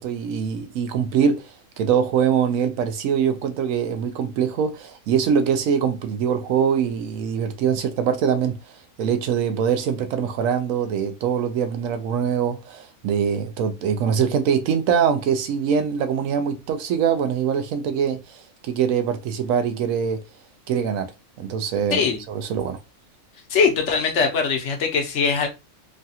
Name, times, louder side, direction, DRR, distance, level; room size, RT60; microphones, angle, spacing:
voice 1, 0.0-1.5 1.8-8.6 9.0-20.2 20.7-21.1 21.4-22.8, right 7 dB, 80° right, 1.0 m, -23 dB
voice 2, 21.9-22.2 23.5-25.5, left 5 dB, 65° left, 1.0 m, -21 dB
3.2 x 2.3 x 2.7 m
omnidirectional pair, 1.4 m